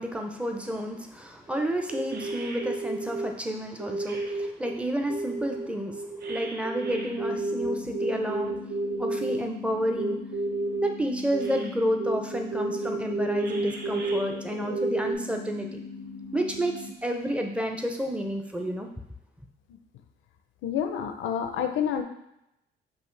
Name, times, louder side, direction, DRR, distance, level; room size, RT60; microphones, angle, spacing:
voice 1, 0.0-8.7 9.0-10.2 10.8-15.8 16.3-18.9, equal, 5° right, 3 dB, 0.6 m, -30 dB
sound 1, 1.5-1.6 1.9-3.3 3.8-4.7 5.1-9.4 10.0-10.9 11.3-11.7 12.0-15.2, right 2 dB, 55° right, 0.7 m, -31 dB
sound 2, 6.9-16.9, left 4 dB, 75° right, 1.3 m, -41 dB
voice 2, 20.6-22.0, left 8 dB, 80° left, 6 dB, 0.5 m, -28 dB
5.4 x 2.5 x 3.2 m, 0.83 s
cardioid pair, 90°, 20 cm